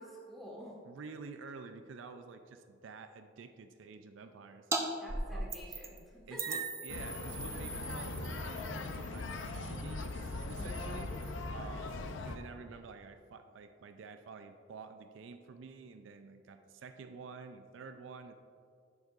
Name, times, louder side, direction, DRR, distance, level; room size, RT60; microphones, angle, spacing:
voice 1, 0.0-0.8 5.0-6.6 10.5-10.9, equal, ahead, -4 dB, 1.3 m, -49 dB
voice 2, 0.8-4.7 5.3-5.5 6.3-11.2 11.5-18.3, right 4 dB, 75° right, 8 dB, 0.4 m, -49 dB
sound 1, 4.7-4.8 5.1-6.0 6.4-11.5, right 3 dB, 15° right, 0.5 m, -40 dB
sound 2, 6.9-12.4, left 3 dB, 70° left, 0.5 m, -40 dB
10.5 x 6.5 x 2.5 m, 2.3 s
head